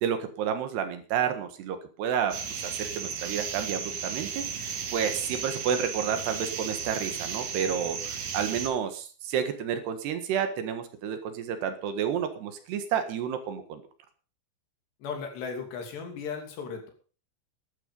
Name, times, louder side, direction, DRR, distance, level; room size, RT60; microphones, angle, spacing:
voice 1, 0.0-13.8, right 8 dB, 70° right, 8 dB, 3.5 m, -30 dB
sound 1, 2.3-8.7, right 6 dB, 55° right, 2.9 m, -34 dB
voice 2, 15.0-16.9, left 5 dB, 70° left, 4 dB, 4.9 m, -36 dB
12.5 x 12.0 x 5.4 m, 0.38 s
omnidirectional pair, 5.1 m